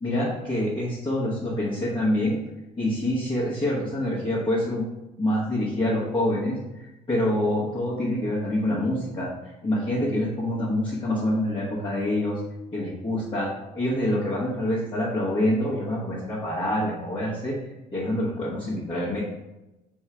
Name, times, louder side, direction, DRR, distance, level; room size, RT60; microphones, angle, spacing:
voice 1, 0.0-2.4 2.8-4.9 5.2-12.4 12.7-17.6 17.9-19.2, left 1 dB, 25° left, -8 dB, 1.4 m, -26 dB
3.7 x 3.1 x 4.7 m, 0.98 s
hypercardioid pair, 55°, 20 cm